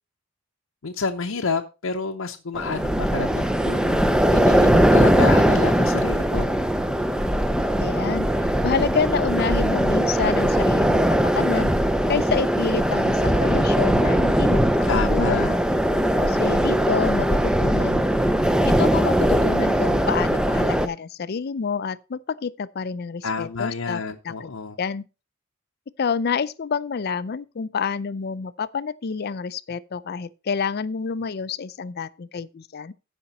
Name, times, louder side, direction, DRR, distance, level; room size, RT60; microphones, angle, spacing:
voice 1, 0.8-6.5 14.9-15.6 23.2-24.8, left 4 dB, 80° left, 0.8 m, -29 dB
sound 1, 2.6-20.9, equal, 5° right, 0.5 m, -20 dB
voice 2, 7.8-11.7 12.1-15.5 16.2-18.0 18.6-24.5 24.8-25.1 26.0-32.9, left 5 dB, 50° left, 0.4 m, -28 dB
14.5 x 5.2 x 4.1 m
head